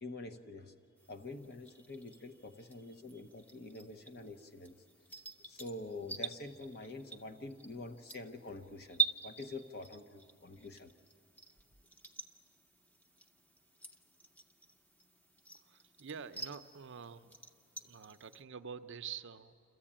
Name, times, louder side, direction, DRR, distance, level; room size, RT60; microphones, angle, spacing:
voice 1, 0.0-0.7 1.1-4.8 5.5-10.9, left 2 dB, 45° left, 6 dB, 0.9 m, -46 dB
sound 1, 1.0-18.4, right 6 dB, 5° left, 0.7 m, -45 dB
voice 2, 15.6-17.3 17.8-19.5, right 7 dB, 55° right, 10 dB, 0.6 m, -47 dB
27.0 x 14.5 x 8.8 m, 2.5 s
head